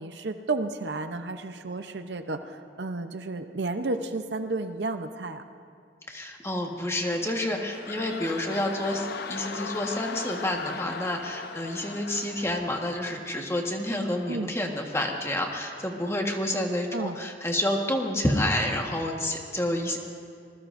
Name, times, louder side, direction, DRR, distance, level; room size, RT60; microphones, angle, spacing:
voice 1, 0.0-5.4 14.3-14.5 16.9-17.2, right 3 dB, 65° right, 8 dB, 0.7 m, -32 dB
voice 2, 6.1-20.0, left 1 dB, 15° left, 1 dB, 1.4 m, -29 dB
sound 1, 7.1-13.6 14.2-14.3, left 4 dB, 60° left, 0.8 m, -39 dB
25.5 x 20.5 x 2.6 m, 2.3 s
head